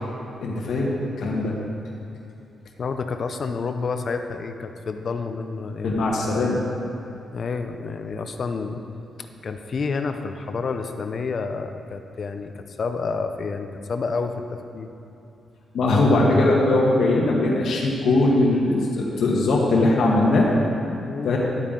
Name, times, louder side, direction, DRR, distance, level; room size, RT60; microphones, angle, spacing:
voice 1, 0.4-1.5 5.8-6.6 15.7-20.5 21.2-21.4, left 2 dB, 75° left, -3 dB, 1.2 m, -20 dB
voice 2, 2.8-6.2 7.3-8.8 9.2-14.9 21.0-21.4, left 4 dB, 50° left, 7 dB, 0.6 m, -29 dB
11.0 x 8.7 x 3.8 m, 2.8 s
cardioid pair, 110°, 0 cm